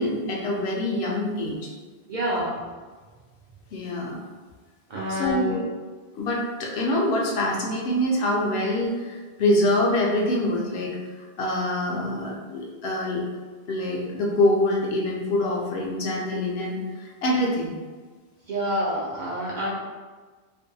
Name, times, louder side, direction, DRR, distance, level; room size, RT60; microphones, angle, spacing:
voice 1, 0.0-1.7 3.7-4.2 5.1-5.6 6.1-11.0 11.4-13.3 13.7-17.7, left 1 dB, 70° left, -2 dB, 0.8 m, -25 dB
voice 2, 2.1-2.6 4.9-5.6 18.5-19.7, equal, 60° right, -5 dB, 0.5 m, -27 dB
2.6 x 2.2 x 2.6 m, 1.4 s
omnidirectional pair, 1.1 m